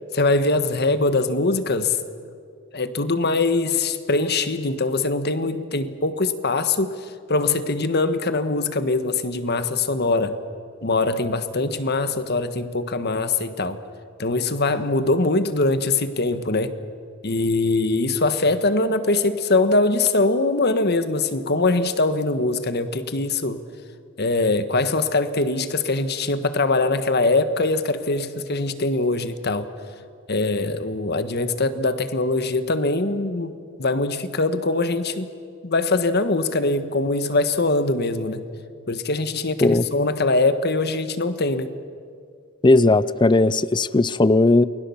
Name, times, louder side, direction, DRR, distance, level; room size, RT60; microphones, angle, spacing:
voice 1, 0.1-2.0 2.7-10.4 10.8-13.8 14.2-16.7 17.2-23.6 24.2-29.7 30.3-35.3 35.6-38.4 38.9-41.7, left 3 dB, 50° left, 11 dB, 1.4 m, -22 dB
voice 2, 42.6-44.7, left 2 dB, 20° left, 18 dB, 0.5 m, -17 dB
29.0 x 21.5 x 7.2 m, 2.3 s
head